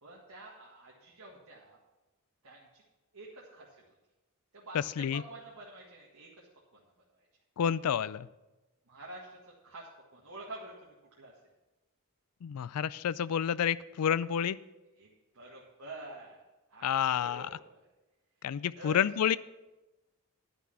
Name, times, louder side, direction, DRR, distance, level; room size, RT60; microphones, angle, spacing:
voice 1, 0.0-1.8 2.4-2.8 3.1-3.7 4.5-6.5 7.2-7.3 8.9-9.4 9.6-11.3 15.0-16.4 16.7-17.9 18.7-19.0, right 2 dB, 80° right, -4 dB, 1.8 m, -48 dB
voice 2, 4.7-5.2 7.6-8.3 12.4-14.6 16.8-17.5 18.4-19.4, left 8 dB, 85° left, 19 dB, 0.4 m, -29 dB
11.0 x 6.1 x 7.0 m, 1.1 s
head